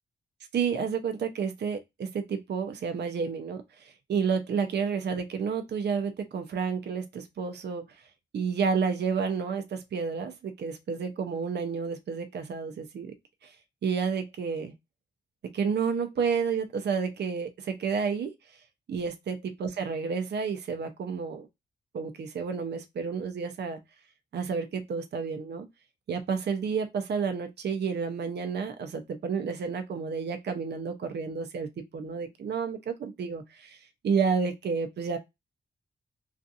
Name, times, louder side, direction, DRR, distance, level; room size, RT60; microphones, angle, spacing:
voice 1, 0.5-7.8 8.3-13.1 13.4-13.5 13.8-14.7 15.5-18.3 18.9-21.5 21.9-23.8 24.3-25.7 26.1-35.2, right 6 dB, 60° right, 0.5 m, -30 dB
2.6 x 2.4 x 2.4 m
cardioid pair, 95°, 20 cm